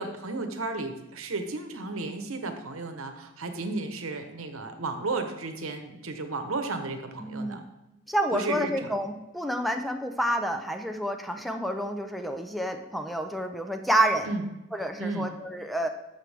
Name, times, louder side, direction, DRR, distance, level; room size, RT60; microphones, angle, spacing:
voice 1, 0.0-7.6 8.3-8.9 14.2-14.4 15.0-15.3, right 3 dB, 85° right, 7 dB, 1.1 m, -33 dB
voice 2, 7.2-7.6 8.1-14.3 14.7-15.9, right 1 dB, ahead, 5 dB, 0.5 m, -29 dB
13.5 x 6.0 x 3.5 m, 0.97 s
head